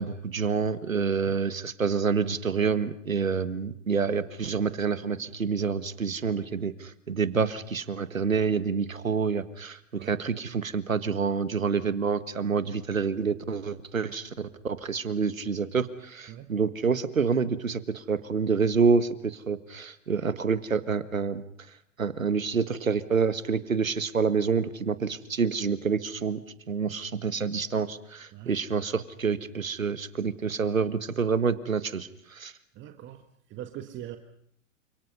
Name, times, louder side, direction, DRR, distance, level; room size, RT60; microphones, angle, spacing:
voice 1, 0.0-21.4 22.0-26.4 26.7-32.5, right 5 dB, 85° right, 13 dB, 1.7 m, -27 dB
voice 2, 32.7-34.2, right 12 dB, 30° right, 7 dB, 1.7 m, -42 dB
29.0 x 26.5 x 5.6 m, 0.69 s
figure-of-eight pair, 105°, 39 cm